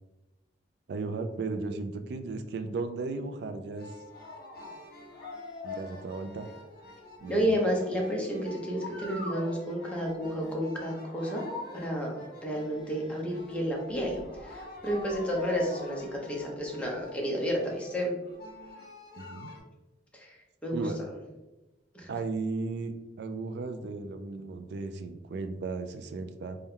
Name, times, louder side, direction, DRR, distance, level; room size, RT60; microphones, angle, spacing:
voice 1, 0.9-3.9 5.6-6.5 7.2-7.6 19.2-19.5 20.7-21.0 22.1-26.6, right 3 dB, 65° right, 7 dB, 0.3 m, -35 dB
sound 1, 3.8-19.6, left 2 dB, 55° left, 1.2 m, -44 dB
voice 2, 7.3-11.4 11.7-12.2 12.4-18.1 20.1-20.4 20.6-20.9 21.9-22.1, equal, 5° left, -2 dB, 0.8 m, -31 dB
4.1 x 2.2 x 3.6 m, 1.0 s
head